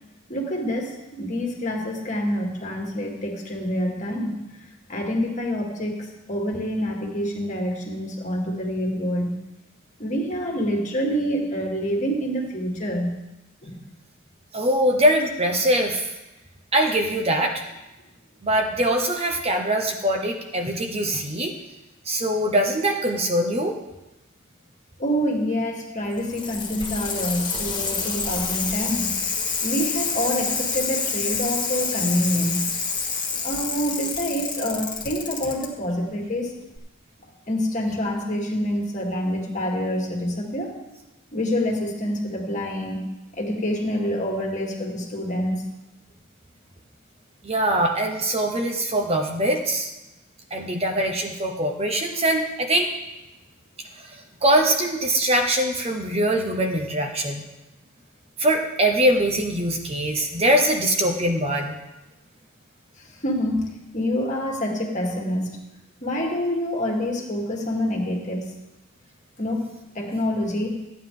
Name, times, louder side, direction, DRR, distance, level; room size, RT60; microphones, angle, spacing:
voice 1, 0.3-4.3 4.9-9.3 10.0-13.1 13.6-13.8 25.0-29.1 29.6-32.7 33.3-36.6 37.5-40.7 41.3-43.0 43.3-45.7 63.2-63.6 63.9-65.6 66.0-68.5 69.4-69.7 70.0-70.8, equal, 40° left, 0 dB, 1.9 m, -26 dB
voice 2, 14.5-16.1 16.7-17.6 18.4-21.5 22.1-23.7 47.4-49.9 50.5-52.9 54.4-57.4 58.4-61.8, right 1 dB, 30° right, 2 dB, 1.0 m, -22 dB
Bicycle, 26.0-35.7 36.8-36.9, left 5 dB, 20° left, 1.5 m, -28 dB
14.0 x 9.4 x 3.8 m, 0.99 s
head